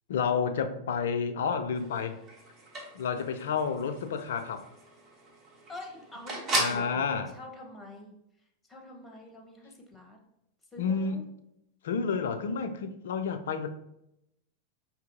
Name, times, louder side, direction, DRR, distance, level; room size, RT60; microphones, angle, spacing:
voice 1, 0.1-2.2 2.9-4.6 6.5-7.3 10.8-11.2 11.8-13.7, left 6 dB, 60° left, 0.3 m, -30 dB
sound 1, 1.8-6.9, right 2 dB, 30° right, 0.9 m, -37 dB
voice 2, 5.7-6.4 6.7-8.1 8.7-10.2 10.7-11.3, left 2 dB, 15° left, 0.7 m, -46 dB
4.6 x 2.8 x 2.5 m
figure-of-eight pair, 90°, 0 cm